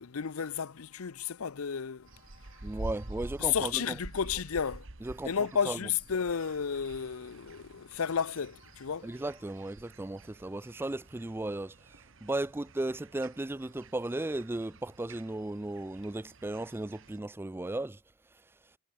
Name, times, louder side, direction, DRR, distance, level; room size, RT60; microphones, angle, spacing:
voice 1, 0.0-2.1 3.4-4.9 5.2-9.1, left 7 dB, 85° left, 0.7 m, -32 dB
sound 1, 2.1-17.2, right 2 dB, 65° right, 1.6 m, -48 dB
voice 2, 2.6-4.0 5.0-5.3 5.7-5.8 9.0-11.7 12.2-18.0, right 2 dB, 10° right, 0.3 m, -35 dB
head